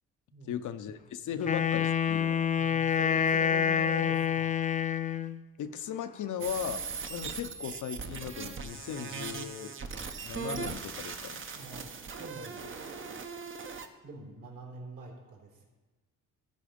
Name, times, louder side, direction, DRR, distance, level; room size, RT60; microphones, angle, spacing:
voice 1, 0.5-2.5 5.6-6.8 7.1-9.7 10.2-11.4, left 9 dB, 60° left, 10 dB, 0.7 m, -37 dB
Wind instrument woodwind instrument, 1.4-5.4, left 8 dB, 25° left, 0.3 m, -27 dB
voice 2, 2.6-4.5 11.5-11.9 12.2-12.6 14.0-15.7, right 2 dB, 60° right, -1 dB, 3.4 m, -44 dB
sound 1, 6.4-13.9, right 5 dB, 35° right, 0.8 m, -39 dB
13.5 x 4.8 x 5.2 m, 1.3 s
cardioid pair, 90°, 34 cm